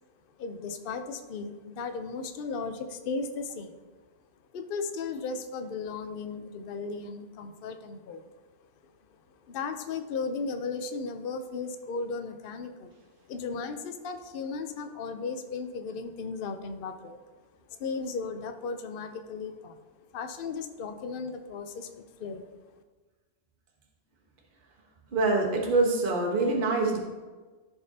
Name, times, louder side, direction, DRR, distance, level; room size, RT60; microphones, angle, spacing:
voice 1, 0.4-3.8 4.5-8.2 9.5-12.9 13.3-17.2 17.7-19.8 20.1-22.5, left 4 dB, 55° left, 7 dB, 0.8 m, -36 dB
voice 2, 25.1-27.0, right 3 dB, 45° right, -1 dB, 1.3 m, -25 dB
14.5 x 5.3 x 2.8 m, 1.3 s
omnidirectional pair, 1.3 m